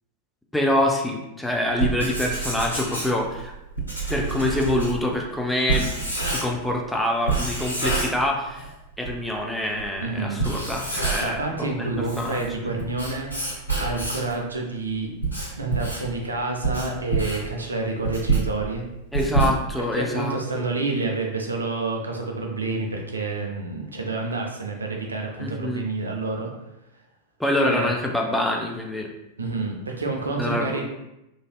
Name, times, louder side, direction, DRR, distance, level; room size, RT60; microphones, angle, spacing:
voice 1, 0.5-3.5 4.1-5.9 6.2-8.7 9.0-12.4 19.1-20.7 25.4-25.8 27.4-29.1 30.4-30.8, left 1 dB, 5° left, 0 dB, 0.4 m, -25 dB
Writing, 1.7-6.7 7.3-8.7 9.0-9.1 9.8-9.9 10.3-11.5 11.9-14.4 14.9-20.0, right 3 dB, 90° left, 0.9 m, -27 dB
voice 2, 10.0-10.5 11.2-13.3 13.8-15.1 15.6-18.8 20.0-26.5 27.6-27.9 29.4-30.8, right 3 dB, 75° right, 1 dB, 0.4 m, -28 dB
3.2 x 2.6 x 2.2 m, 0.91 s
figure-of-eight pair, 90°, 0 cm